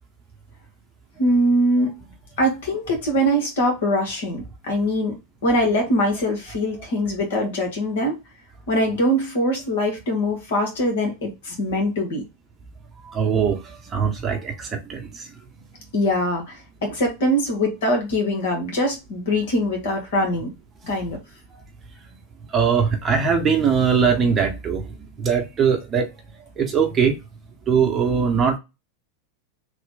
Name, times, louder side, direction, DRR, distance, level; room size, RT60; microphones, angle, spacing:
voice 1, 1.2-1.9 2.4-5.1 5.4-8.2 8.7-12.2 15.9-16.6 16.8-20.5 20.8-21.2, equal, 65° left, 1.7 m, -22 dB
voice 2, 13.0-15.3 22.5-24.8 25.2-26.1 26.6-27.2 27.7-28.6, right 6 dB, 25° right, 1.0 m, -21 dB
3.4 x 2.4 x 3.8 m
figure-of-eight pair, 90°, 0 cm